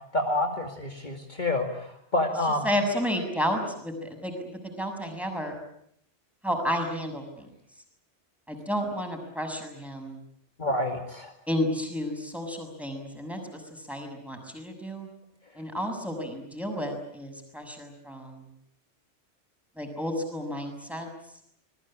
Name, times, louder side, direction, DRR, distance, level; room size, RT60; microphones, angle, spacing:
voice 1, 0.1-2.7 10.6-11.3, left 1 dB, 40° left, 2 dB, 2.6 m, -28 dB
voice 2, 2.6-4.3 4.6-5.6 6.4-7.5 8.5-10.2 11.5-15.1 15.6-18.5 19.8-21.1, equal, ahead, 3 dB, 6.6 m, -31 dB
26.5 x 21.5 x 8.8 m, 0.70 s
omnidirectional pair, 1.2 m